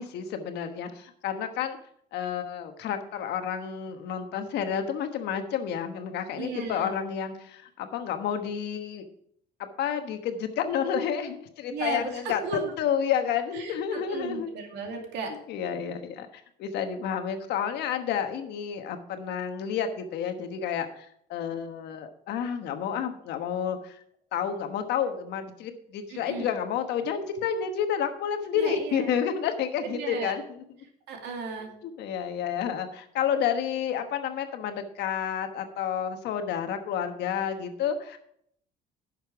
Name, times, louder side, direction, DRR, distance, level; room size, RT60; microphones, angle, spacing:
voice 1, 0.0-1.8 2.1-9.0 9.6-14.5 15.5-16.3 16.6-24.0 24.3-30.4 31.8-38.2, left 8 dB, 80° left, 7 dB, 1.2 m, -30 dB
voice 2, 6.4-6.9 11.7-12.6 13.5-15.3 26.1-26.5 28.5-29.1 29.8-30.4 31.1-31.7, right 4 dB, 80° right, 3 dB, 2.4 m, -35 dB
10.5 x 6.7 x 4.7 m, 0.70 s
cardioid pair, 120°, 17 cm